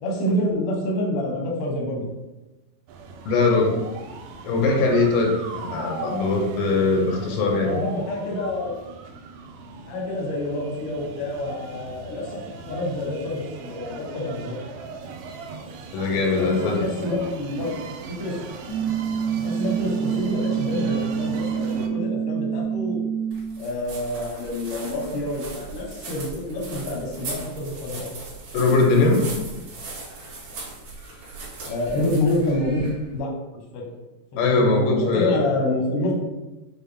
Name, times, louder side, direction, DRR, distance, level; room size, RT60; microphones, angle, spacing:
voice 1, 0.0-2.0 7.6-8.7 9.9-12.4 12.7-14.5 16.3-16.5 16.8-17.7 18.2-18.4 19.4-23.1 23.6-28.1 31.6-33.3 33.7-33.8 34.4-36.1, left 1 dB, 70° left, -2 dB, 1.4 m, -27 dB
sound 1, 2.9-21.9, right 4 dB, 80° right, 1.8 m, -38 dB
voice 2, 3.3-3.8 4.4-7.8 15.9-16.9 28.5-29.3 34.4-35.4, left 3 dB, 90° left, 1 dB, 2.4 m, -21 dB
sound 2, 18.7-23.6, right 7 dB, 45° left, 0.9 m, -26 dB
sound 3, 23.3-33.2, right 3 dB, 60° right, 2.5 m, -38 dB
6.5 x 2.3 x 3.4 m, 1.0 s
omnidirectional pair, 4.0 m